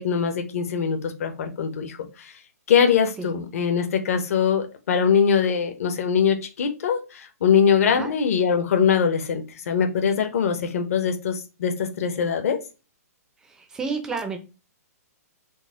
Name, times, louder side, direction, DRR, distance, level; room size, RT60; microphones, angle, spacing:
voice 1, 0.0-2.3 2.7-12.6, left 7 dB, 60° left, 5 dB, 0.8 m, -22 dB
voice 2, 13.4-14.4, right 4 dB, 5° right, 6 dB, 0.4 m, -31 dB
3.9 x 2.1 x 3.5 m, 0.30 s
hypercardioid pair, 160°, 9 cm